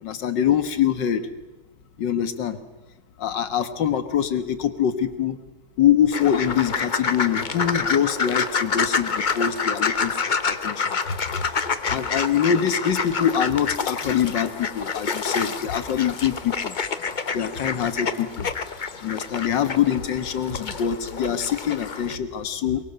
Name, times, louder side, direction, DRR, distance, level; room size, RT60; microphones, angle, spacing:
voice 1, 0.0-1.2 2.0-2.6 3.2-5.4 5.8-11.0 11.9-16.7 17.3-18.5 19.0-22.8, left 9 dB, 75° left, 11 dB, 2.0 m, -24 dB
sound 1, 6.1-22.2, left 5 dB, 35° left, 0.8 m, -28 dB
23.0 x 22.0 x 6.7 m, 1.1 s
omnidirectional pair, 1.9 m